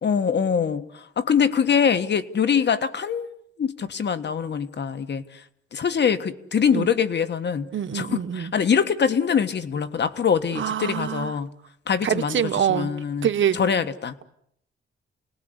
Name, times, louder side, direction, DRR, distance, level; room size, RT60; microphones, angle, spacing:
voice 1, 0.0-3.3 3.6-5.4 5.7-7.7 7.9-11.5 11.9-14.1, left 7 dB, 60° left, 11 dB, 1.6 m, -24 dB
voice 2, 7.7-8.5 10.5-11.3 12.0-12.9 13.2-13.6, right 9 dB, 70° right, 10 dB, 1.3 m, -25 dB
29.0 x 20.0 x 8.2 m, 0.74 s
cardioid pair, 105°, 20 cm